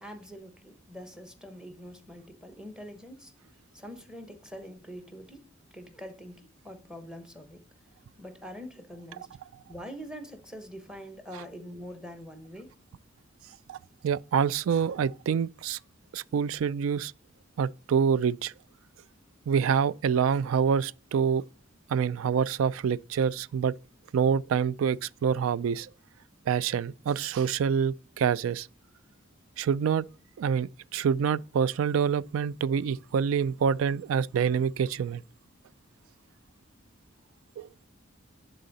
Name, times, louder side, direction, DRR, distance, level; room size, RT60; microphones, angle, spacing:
voice 1, 0.0-3.3 3.7-5.4 5.7-7.6 8.2-9.3 9.7-12.7, equal, 5° right, 1.0 m, -44 dB
voice 2, 14.0-15.8 16.1-17.1 17.6-18.5 19.5-21.4 21.9-23.7 24.1-25.9 26.5-28.7 29.6-30.1 30.4-35.2 37.6-37.7, right 7 dB, 80° right, 0.3 m, -26 dB
10.5 x 3.9 x 4.0 m
head